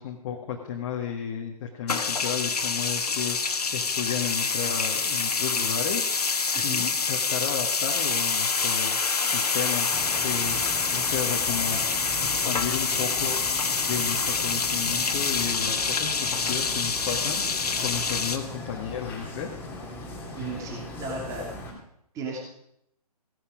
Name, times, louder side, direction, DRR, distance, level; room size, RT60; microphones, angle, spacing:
voice 1, 0.0-6.1 6.6-9.0 9.3-9.9 10.2-10.6 10.9-11.8 12.2-13.6 13.9-19.6, left 8 dB, 30° left, 0 dB, 1.6 m, -33 dB
sound 1, 1.9-18.4, left 5 dB, 75° left, 1.7 m, -26 dB
voice 2, 6.5-6.8 20.4-21.5 22.1-22.4, right 2 dB, 15° right, 0 dB, 2.7 m, -35 dB
sound 2, 9.9-21.7, left 2 dB, 10° left, 2.6 m, -39 dB
16.5 x 11.5 x 5.0 m, 0.75 s
figure-of-eight pair, 140°, 20 cm